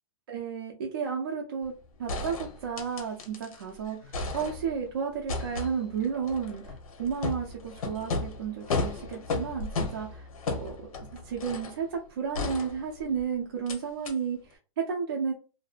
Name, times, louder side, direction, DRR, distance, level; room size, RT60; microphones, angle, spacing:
voice 1, 0.3-1.7 2.0-6.7 7.0-15.3, right 6 dB, 40° right, -1 dB, 0.4 m, -33 dB
sound 1, 1.6-1.7 2.1-3.6 3.9-4.9 5.3-11.8 12.3-13.2 13.7-13.8 14.1-14.2, left 3 dB, 85° left, 0.8 m, -34 dB
2.5 x 2.2 x 2.4 m, 0.34 s
hypercardioid pair, 180°, 18 cm